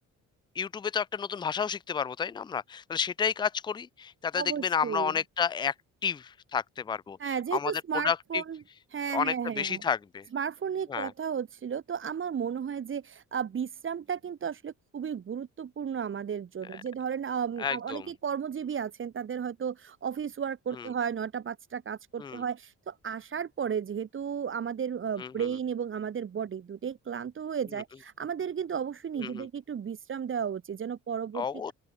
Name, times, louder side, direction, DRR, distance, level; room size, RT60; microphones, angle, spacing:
voice 1, 0.6-5.7 6.0-7.2 7.5-7.7 8.0-8.4 9.1-10.3 10.9-11.1 16.7-16.8 17.6-18.1 20.7-20.9 22.2-22.4 25.2-25.5 29.2-29.5 31.3-31.7, left 7 dB, 15° left, 0.4 m, -31 dB
voice 2, 4.3-5.1 7.2-8.6 8.9-9.8 10.3-31.7, right 7 dB, 40° right, 1.8 m, -34 dB
open air
cardioid pair, 115°, 30 cm